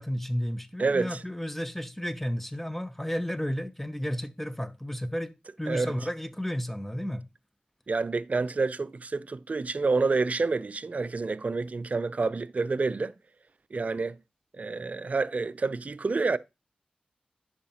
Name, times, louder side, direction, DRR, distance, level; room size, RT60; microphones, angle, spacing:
voice 1, 0.0-7.2, equal, 5° left, 0.8 m, -32 dB
voice 2, 0.8-1.2 5.7-5.9 7.9-13.1 13.7-14.2 14.5-16.4, right 4 dB, 50° right, 0.4 m, -28 dB
10.0 x 4.9 x 2.9 m
cardioid pair, 40°, 3 cm